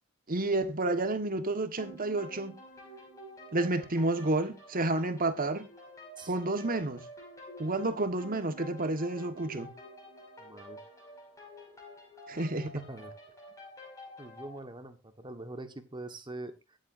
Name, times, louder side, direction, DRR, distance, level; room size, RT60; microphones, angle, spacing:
voice 1, 0.3-2.6 3.5-5.7 6.3-7.1 7.6-9.7 12.3-12.8, right 2 dB, 45° right, 1.5 m, -30 dB
sound 1, 1.8-14.6, equal, 15° left, 6.1 m, -49 dB
voice 2, 10.4-10.8 12.3-12.4 12.7-13.1 14.2-16.8, right 2 dB, 25° right, 1.4 m, -44 dB
22.5 x 7.8 x 2.6 m
head